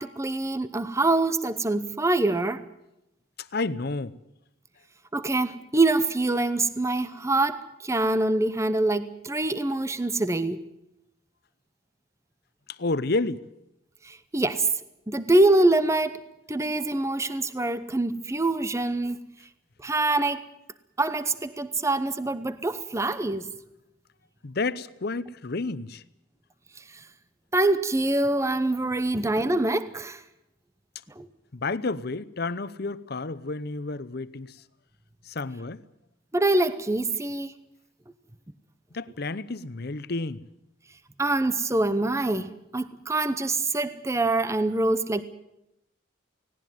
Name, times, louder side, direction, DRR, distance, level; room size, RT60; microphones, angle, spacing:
voice 1, 0.0-2.6 5.1-10.6 14.0-14.7 15.1-19.2 19.8-20.4 21.0-23.5 27.5-30.2 31.2-31.3 36.3-37.5 41.2-45.2, right 2 dB, 15° right, 0.8 m, -25 dB
voice 2, 3.4-4.2 12.7-13.4 24.4-26.0 31.5-34.6 35.2-35.8 38.9-40.4, left 3 dB, 55° left, 0.8 m, -30 dB
18.0 x 18.0 x 9.2 m
head